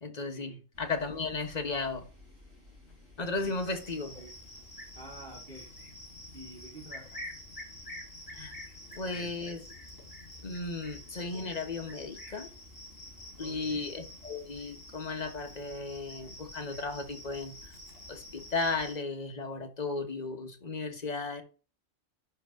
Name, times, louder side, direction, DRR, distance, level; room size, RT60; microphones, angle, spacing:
voice 1, 0.0-2.1 3.2-4.2 8.3-8.5 8.9-9.6 10.4-12.5 13.4-17.7 18.1-21.4, left 3 dB, 35° left, 1.1 m, -35 dB
sound 1, 0.7-18.9, left 3 dB, 55° left, 4.8 m, -56 dB
Cricket, 3.4-19.0, left 1 dB, 15° left, 3.7 m, -48 dB
voice 2, 4.9-5.7 6.3-7.2 8.8-9.4 13.4-13.9, right 2 dB, 40° right, 2.4 m, -49 dB
10.5 x 3.9 x 3.5 m
omnidirectional pair, 1.4 m